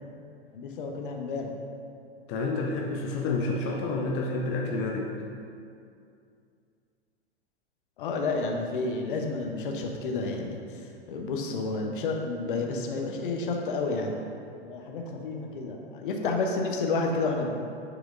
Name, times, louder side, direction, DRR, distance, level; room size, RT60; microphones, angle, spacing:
voice 1, 0.5-1.5 8.0-14.2 14.6-17.5, left 3 dB, 50° left, 2 dB, 0.9 m, -30 dB
voice 2, 2.3-5.1, left 3 dB, 20° left, 0 dB, 0.3 m, -29 dB
9.4 x 4.9 x 2.6 m, 2.5 s
figure-of-eight pair, 100°, 33 cm